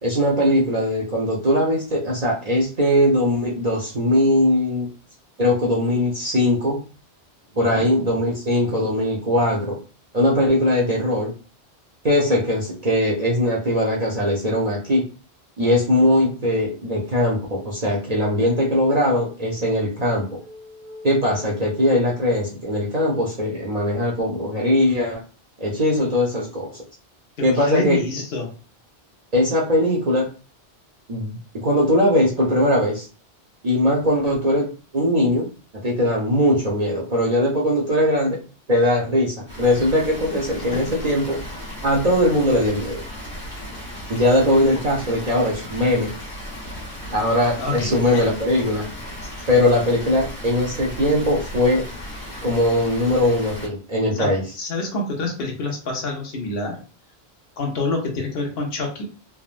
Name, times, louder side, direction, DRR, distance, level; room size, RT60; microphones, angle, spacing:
voice 1, 0.0-4.9 5.4-6.8 7.6-9.8 10.1-11.3 12.0-15.0 15.6-20.3 21.0-25.2 25.6-26.8 27.4-28.0 29.3-30.3 31.1-33.1 33.6-35.5 35.8-38.4 38.7-41.4 41.8-43.0 44.1-46.1 47.1-48.9 49.5-51.8 52.4-54.4, left 1 dB, 45° right, -3 dB, 0.7 m, -20 dB
voice 2, 7.5-7.9 27.4-28.5 40.7-40.9 47.6-48.3 49.2-49.3 54.1-56.8 57.6-59.0, left 3 dB, 65° left, 1 dB, 1.0 m, -27 dB
sound 1, 19.9-24.2, left 2 dB, 85° right, 1.2 m, -45 dB
Water, 39.5-53.7, equal, 45° left, 1.5 m, -35 dB
3.4 x 2.1 x 2.4 m, 0.37 s
omnidirectional pair, 1.1 m